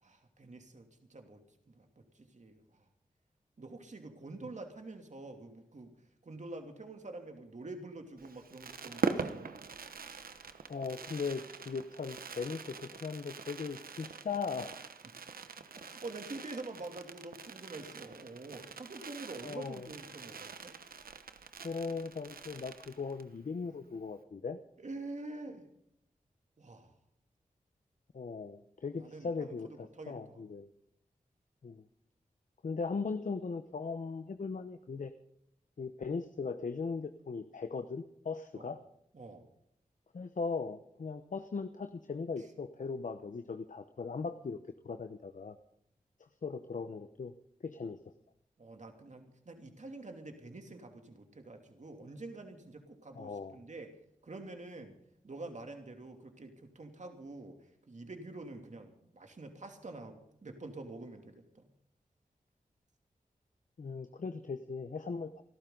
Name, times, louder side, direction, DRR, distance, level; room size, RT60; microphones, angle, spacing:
voice 1, 0.0-1.4 1.7-2.8 3.6-5.9 6.2-9.6 15.7-20.7 24.8-25.7 26.6-26.9 29.0-30.4 38.5-38.7 39.1-39.5 42.4-42.5 48.6-53.9 54.2-54.9 55.2-61.7, right 2 dB, 55° right, 4 dB, 2.9 m, -47 dB
Fireworks, 8.2-23.4 23.7-23.8 23.9-24.2, right 5 dB, 80° right, 1.1 m, -43 dB
voice 2, 10.7-14.8 19.4-19.9 21.6-24.6 28.1-30.7 31.6-31.9 32.6-35.1 35.8-38.8 40.1-44.6 44.8-45.6 46.2-47.3 47.6-48.0 53.1-53.6 63.8-65.4, left 4 dB, 60° left, 9 dB, 1.0 m, -39 dB
28.0 x 12.5 x 4.0 m, 0.73 s
cardioid pair, 50°, 15 cm